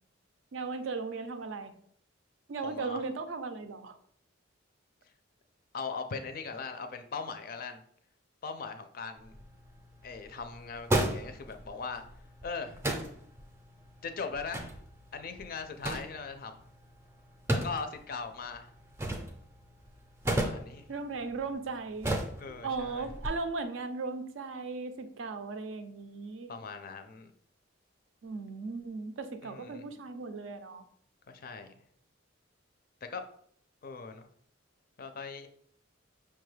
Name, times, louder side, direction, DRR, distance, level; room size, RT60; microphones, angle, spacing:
voice 1, 0.5-1.7 2.5-4.0 15.9-16.0 20.9-22.1 22.6-26.7 28.2-30.8, right 4 dB, 70° right, 9 dB, 0.4 m, -37 dB
voice 2, 2.6-3.0 5.7-7.8 8.4-9.3 10.0-12.0 12.4-12.8 14.0-14.7 15.1-16.6 17.5-18.7 20.4-20.9 22.4-23.1 26.5-27.3 29.4-29.9 31.3-31.7 33.0-33.2 33.8-34.3 35.0-35.5, left 5 dB, 45° left, 8 dB, 0.4 m, -40 dB
sound 1, 9.2-23.3, right 1 dB, 15° right, 0.5 m, -37 dB
5.6 x 2.3 x 3.2 m, 0.63 s
head